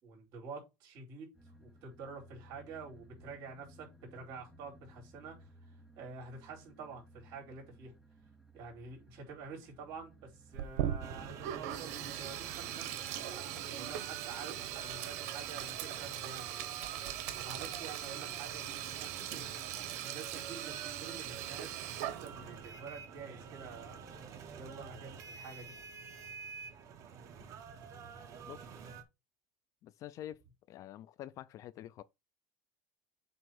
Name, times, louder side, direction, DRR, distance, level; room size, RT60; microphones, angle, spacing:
voice 1, 0.0-5.5 6.0-7.9 8.5-13.1 13.7-16.5 17.3-19.5 20.0-21.7 22.0-24.0 24.6-25.7, right 4 dB, 55° right, 4.3 m, -48 dB
sound 1, 1.3-11.6, equal, ahead, 0.9 m, -59 dB
Sink (filling or washing), 10.5-22.6, right 11 dB, 75° right, 1.1 m, -40 dB
sound 2, 11.0-29.0, right 6 dB, 40° right, 1.1 m, -48 dB
voice 2, 29.8-32.0, left 12 dB, 40° left, 0.4 m, -47 dB
7.8 x 3.0 x 6.0 m
cardioid pair, 150°, 9 cm